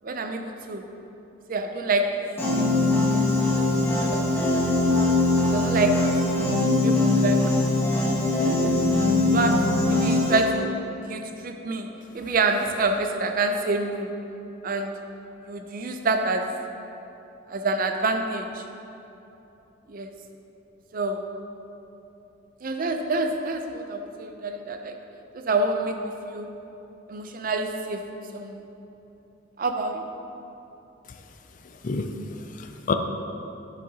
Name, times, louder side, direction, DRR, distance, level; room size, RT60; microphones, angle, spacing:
voice 1, 0.0-0.8 1.5-2.3 3.1-3.3 3.5-4.2 4.5-4.7 5.5-6.5 6.8-7.5 8.8-8.9 9.3-10.8 11.1-14.1 14.6-15.0 15.5-16.6 17.5-18.6 19.9-20.1 20.9-21.3 22.6-25.0 25.3-26.5 27.1-28.0 28.3-28.6 29.6-30.1, right 3 dB, 45° right, 5 dB, 0.5 m, -27 dB
Piano, 2.4-10.4, left 2 dB, 10° left, 1.3 m, -22 dB
voice 2, 31.8-32.9, left 4 dB, 40° left, 6 dB, 0.4 m, -29 dB
10.5 x 6.4 x 2.9 m, 2.9 s
head